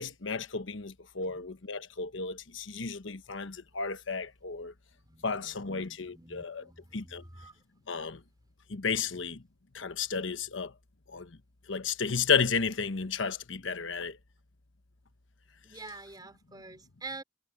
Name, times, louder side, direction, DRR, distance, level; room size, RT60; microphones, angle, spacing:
voice 1, 0.0-4.7 5.2-6.7 6.9-7.2 7.9-8.2 8.7-9.4 9.7-10.7 11.1-11.3 11.7-14.2, left 5 dB, 75° left, 1.1 m, -32 dB
voice 2, 4.9-7.5 15.6-17.2, right 3 dB, 20° right, 4.1 m, -47 dB
head